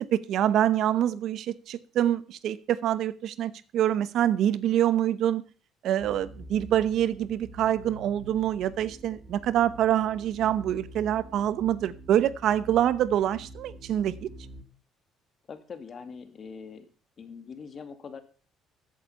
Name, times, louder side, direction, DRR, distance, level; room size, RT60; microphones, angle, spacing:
voice 1, 0.0-5.4 5.8-14.3, right 11 dB, 65° right, 17 dB, 0.8 m, -26 dB
sound 1, 6.0-14.6, right 1 dB, 20° right, 2.3 m, -47 dB
voice 2, 15.5-16.9 17.2-18.2, left 5 dB, 40° left, 10 dB, 2.0 m, -42 dB
14.5 x 8.6 x 5.6 m, 0.37 s
cardioid pair, 120°, 0 cm